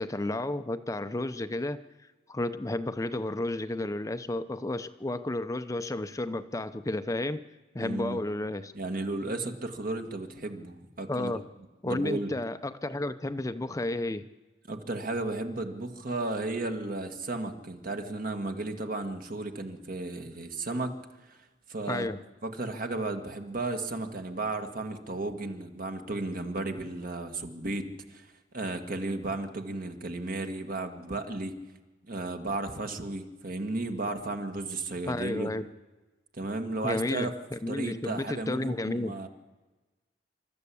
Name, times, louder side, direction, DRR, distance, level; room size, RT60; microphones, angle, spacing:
voice 1, 0.0-1.8 2.3-7.4 7.7-8.7 11.1-11.4 11.8-14.3 21.9-22.2 35.1-35.7 36.8-39.1, left 1 dB, 20° left, 10 dB, 0.6 m, -32 dB
voice 2, 7.8-8.2 8.7-11.3 11.9-12.3 14.7-21.0 21.3-21.4 21.7-22.1 22.4-28.3 28.5-31.6 32.1-35.5 36.4-37.3 37.7-39.3, right 2 dB, 55° right, 5 dB, 1.8 m, -34 dB
27.0 x 13.0 x 8.5 m, 1.2 s
head